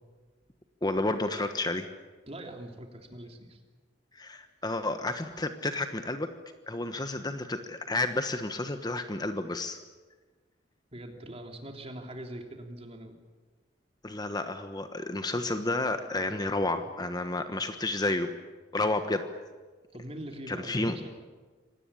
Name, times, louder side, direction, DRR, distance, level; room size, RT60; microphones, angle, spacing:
voice 1, 0.8-1.9 4.1-6.3 6.7-9.8 14.0-18.3 18.7-19.2 20.5-21.0, left 2 dB, 20° left, 8 dB, 1.2 m, -31 dB
voice 2, 2.3-3.6 10.9-13.2 19.9-21.2, right 1 dB, 35° right, 3 dB, 3.5 m, -42 dB
26.0 x 18.0 x 10.0 m, 1.4 s
head